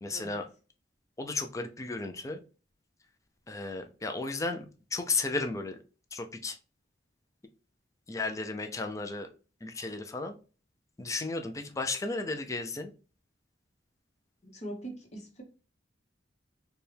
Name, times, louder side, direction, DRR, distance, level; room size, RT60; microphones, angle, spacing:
voice 1, 0.0-0.5 1.2-2.4 3.5-5.8 6.1-6.6 8.1-9.3 9.6-10.3 11.0-12.9, left 3 dB, 15° left, 5 dB, 0.4 m, -34 dB
voice 2, 14.4-15.4, right 1 dB, 40° left, 1 dB, 1.1 m, -42 dB
4.3 x 2.3 x 3.3 m, 0.36 s
head